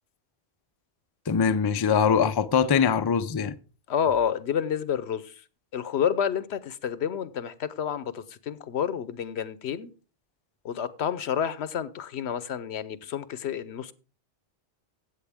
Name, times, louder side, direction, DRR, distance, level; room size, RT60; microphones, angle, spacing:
voice 1, 1.3-3.6, left 6 dB, 40° left, 0.3 m, -22 dB
voice 2, 3.9-5.3 5.7-9.9 10.6-13.9, left 8 dB, 85° left, 1.0 m, -29 dB
15.5 x 7.7 x 3.5 m
omnidirectional pair, 1.1 m